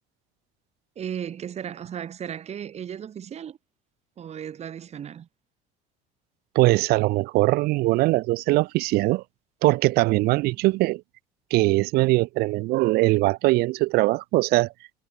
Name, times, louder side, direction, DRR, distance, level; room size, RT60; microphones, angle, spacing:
voice 1, 1.0-3.6 4.2-5.3 10.4-10.6, right 9 dB, 40° right, 3.8 m, -35 dB
voice 2, 6.5-9.2 9.6-11.0 11.5-14.7, right 21 dB, 65° right, 1.3 m, -21 dB
supercardioid pair, 105°, 17 cm